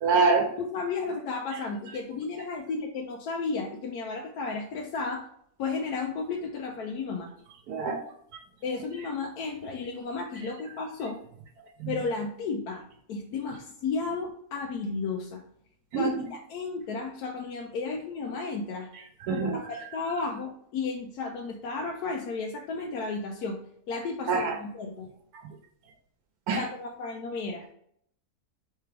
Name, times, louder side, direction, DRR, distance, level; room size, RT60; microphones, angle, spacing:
voice 1, 0.0-0.5 7.7-8.0 11.8-11.9 15.9-16.1 19.3-19.6 24.3-24.5 26.5-26.6, right 4 dB, 90° right, 2 dB, 1.2 m, -24 dB
voice 2, 0.6-5.3 5.6-7.3 8.6-11.2 11.9-15.4 15.9-18.9 19.3-23.6 23.9-25.1 26.6-27.7, left 4 dB, 90° left, 0 dB, 1.2 m, -33 dB
4.6 x 3.4 x 3.2 m, 0.67 s
omnidirectional pair, 1.6 m